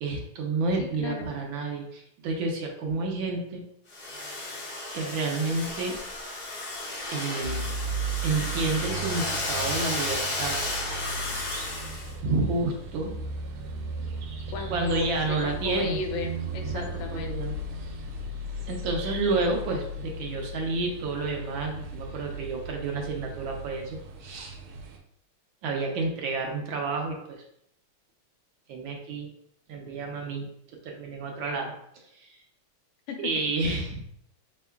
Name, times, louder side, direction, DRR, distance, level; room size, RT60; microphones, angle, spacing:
voice 1, 0.0-3.6 4.9-6.0 7.1-7.7 8.2-10.6 12.2-13.1 14.7-16.0 16.6-16.8 17.1-18.0 18.7-24.6 25.6-27.4 28.7-29.3 29.7-32.4 33.2-34.0, right 3 dB, 75° right, 1 dB, 1.3 m, -30 dB
Domestic sounds home sounds, 3.9-12.1, left 2 dB, 60° left, 0.6 m, -33 dB
sound 1, 7.4-25.0, right 2 dB, 90° right, 1.6 m, -36 dB
voice 2, 14.5-17.3 33.1-33.2 33.6-33.8, left 4 dB, 75° left, 4 dB, 1.3 m, -35 dB
4.2 x 3.7 x 2.3 m, 0.72 s
omnidirectional pair, 2.3 m